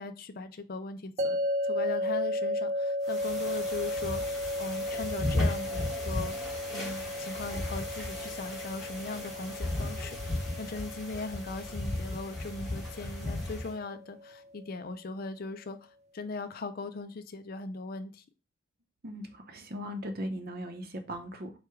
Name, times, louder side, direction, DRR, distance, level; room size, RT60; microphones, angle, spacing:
voice 1, 0.0-1.4 1.6-4.2 4.6-6.4 6.7-18.2, left 3 dB, 50° left, 9 dB, 0.5 m, -39 dB
sound 1, 1.2-14.3, left 1 dB, 35° right, 0.3 m, -35 dB
sound 2, 3.1-13.8, left 1 dB, ahead, 1.5 m, -36 dB
voice 2, 19.0-21.5, equal, 50° right, 6 dB, 0.7 m, -38 dB
4.6 x 2.3 x 4.7 m, 0.32 s
head